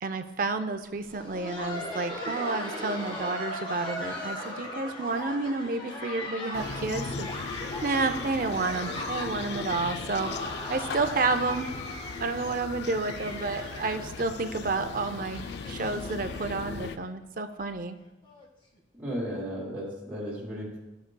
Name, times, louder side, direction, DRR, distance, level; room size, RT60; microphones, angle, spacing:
voice 1, 0.0-7.3 7.8-11.7 12.2-18.0, right 3 dB, 45° right, 9 dB, 0.5 m, -30 dB
Laughter, 0.9-16.6 16.9-17.0 17.6-17.7 18.2-18.4 19.5-19.6, left 1 dB, 30° left, 1.3 m, -38 dB
sound 1, 6.5-17.0, left 5 dB, 65° left, 0.4 m, -38 dB
voice 2, 19.0-20.8, equal, 10° right, -7 dB, 2.3 m, -34 dB
14.5 x 6.0 x 2.2 m, 1.0 s
head